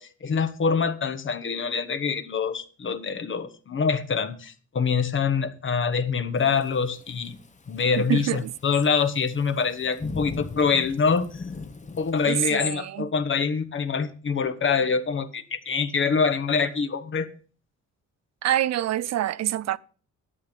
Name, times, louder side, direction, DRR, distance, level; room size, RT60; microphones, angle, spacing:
voice 1, 0.0-7.4 7.7-11.4 12.0-17.3, left 5 dB, 40° left, 1.3 m, -25 dB
Thunderstorm / Rain, 6.4-12.3, left 3 dB, 25° left, 1.0 m, -39 dB
voice 2, 8.0-8.5 12.2-13.1 18.4-19.8, right 12 dB, 60° right, 0.5 m, -26 dB
11.5 x 8.4 x 5.2 m
cardioid pair, 90°, 30 cm